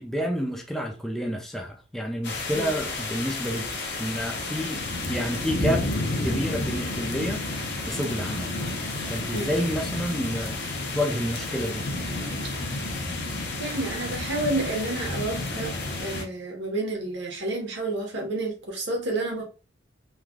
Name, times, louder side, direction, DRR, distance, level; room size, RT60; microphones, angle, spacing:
voice 1, 0.0-3.7 4.0-5.9 6.2-7.4 7.9-8.5 9.1-10.6 10.9-11.8, equal, ahead, 0.4 m, -29 dB
sound 1, 2.2-16.2, left 2 dB, 60° left, 0.7 m, -31 dB
voice 2, 13.6-19.4, right 2 dB, 60° right, 1.1 m, -30 dB
3.2 x 2.3 x 2.4 m
head